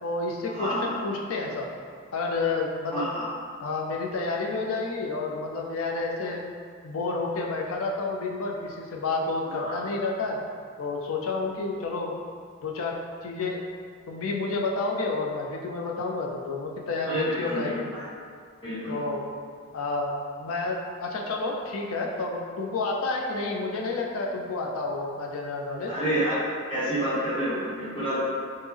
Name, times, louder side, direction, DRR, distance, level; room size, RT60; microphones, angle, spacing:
voice 1, 0.0-1.7 2.1-3.1 3.6-6.4 6.8-10.4 10.8-12.1 12.6-13.6 14.1-17.8 18.9-19.2 19.7-25.9, left 3 dB, 80° left, 0 dB, 0.4 m, -30 dB
voice 2, 0.5-0.9 2.9-3.3 9.5-9.8 17.0-18.0 18.6-18.9 25.9-26.4 26.7-28.2, equal, 25° left, -12 dB, 0.9 m, -29 dB
3.3 x 2.1 x 3.4 m, 2.1 s
head